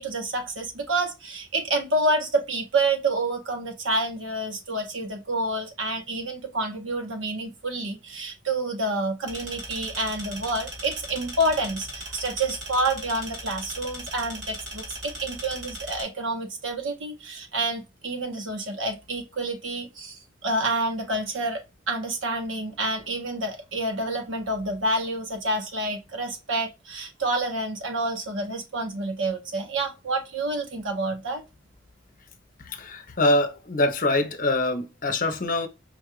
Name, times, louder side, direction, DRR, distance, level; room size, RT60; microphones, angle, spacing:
voice 1, 0.0-21.6 21.9-31.4, right 2 dB, 85° right, 1.3 m, -28 dB
sound 1, 9.3-16.0, right 1 dB, 60° right, 1.8 m, -38 dB
voice 2, 32.6-35.7, left 2 dB, 45° left, 0.7 m, -24 dB
5.1 x 2.5 x 3.0 m
head